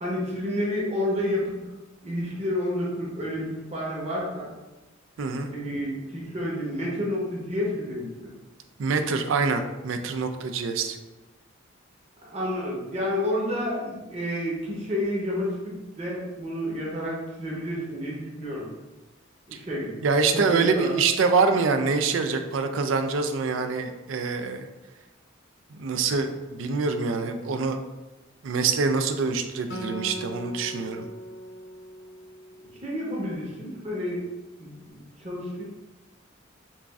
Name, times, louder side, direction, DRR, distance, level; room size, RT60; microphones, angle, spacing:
voice 1, 0.0-1.6 2.0-4.5 5.5-8.1 12.2-18.7 19.5-19.9 20.3-20.9 32.8-34.2 34.6-35.6, left 1 dB, 35° right, -5 dB, 1.0 m, -30 dB
voice 2, 5.2-5.5 8.8-11.0 20.0-24.7 25.7-27.8 28.4-31.1, right 4 dB, 75° right, 7 dB, 0.4 m, -25 dB
Acoustic guitar, 29.7-33.1, equal, 60° left, 0.7 m, -39 dB
7.0 x 2.5 x 2.4 m, 1.1 s
head